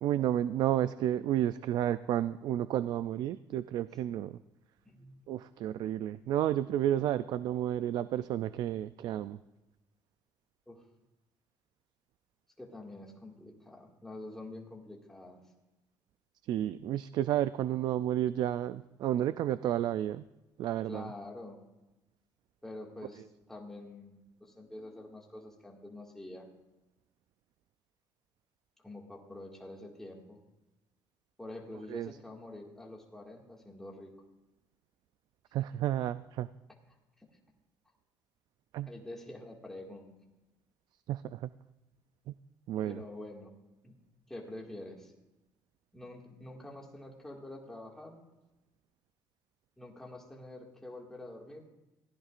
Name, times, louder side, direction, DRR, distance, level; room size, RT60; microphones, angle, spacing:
voice 1, 0.0-4.4 5.3-9.4 16.5-20.2 20.6-21.1 31.9-32.1 35.5-36.5 38.7-38.9 41.1-41.5 42.3-42.4 42.7-43.0, right 12 dB, 65° right, 14 dB, 0.4 m, -31 dB
voice 2, 4.8-5.2 10.7-10.8 12.6-15.4 20.9-21.6 22.6-23.2 23.5-26.5 28.8-30.4 31.4-34.1 38.9-40.1 42.8-43.5 43.8-44.0 44.3-45.1 45.9-48.2 49.8-51.7, left 1 dB, 5° left, -1 dB, 2.0 m, -46 dB
21.5 x 15.5 x 2.5 m, 1.0 s
cardioid pair, 165°, 8 cm